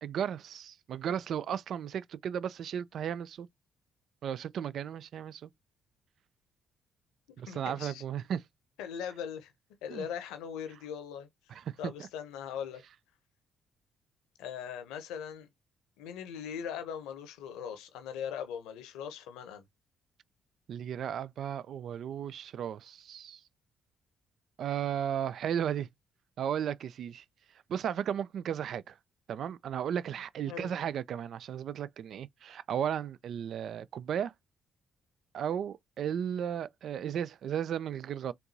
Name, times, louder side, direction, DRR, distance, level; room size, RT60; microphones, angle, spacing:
voice 1, 0.0-3.5 4.2-5.5 7.4-8.4 9.9-10.1 11.5-12.1 20.7-23.4 24.6-25.9 26.4-27.2 27.7-29.0 29.3-34.3 35.3-38.3, right 9 dB, 55° right, 0.4 m, -35 dB
voice 2, 7.5-8.0 8.8-9.5 9.8-12.8 14.4-15.5 16.0-19.6 30.5-30.7, left 8 dB, 70° left, 1.0 m, -40 dB
4.5 x 3.6 x 2.7 m
figure-of-eight pair, 45°, 0 cm